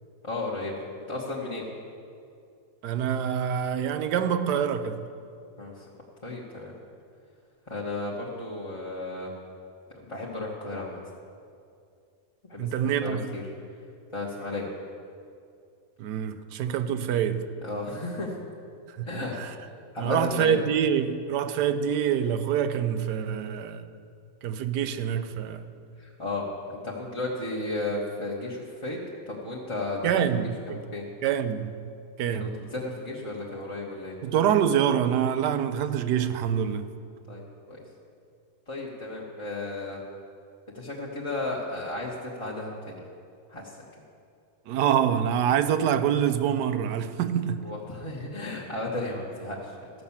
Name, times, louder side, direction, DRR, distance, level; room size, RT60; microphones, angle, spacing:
voice 1, 0.2-0.7 1.1-1.6 5.6-5.8 6.2-6.7 7.7-9.3 9.9-11.0 12.5-12.7 13.0-13.4 14.1-14.7 17.6-18.4 19.1-19.3 19.9-20.5 26.0-30.2 30.7-31.0 32.4-34.2 37.3-37.8 38.7-40.0 40.7-43.0 43.5-43.8 47.6-49.8, left 2 dB, 20° left, 1.0 m, -34 dB
voice 2, 2.8-5.1 12.6-13.3 16.0-17.5 19.0-19.1 19.4-19.5 20.0-23.9 24.4-25.6 30.0-30.8 31.2-31.9 32.2-32.6 34.2-36.9 44.7-47.7, right 8 dB, 90° right, 1.2 m, -26 dB
14.0 x 5.9 x 7.1 m
omnidirectional pair, 1.7 m